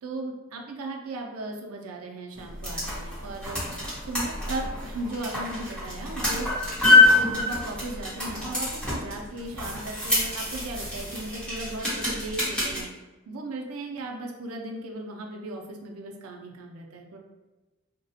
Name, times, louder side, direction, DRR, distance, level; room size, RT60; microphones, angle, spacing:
voice 1, 0.0-3.6 4.1-6.5 6.9-12.9 13.3-17.2, right 2 dB, 90° right, 1 dB, 0.5 m, -36 dB
sound 1, 2.4-12.8, left 3 dB, 5° left, 0.9 m, -26 dB
2.9 x 2.1 x 2.7 m, 1.2 s
head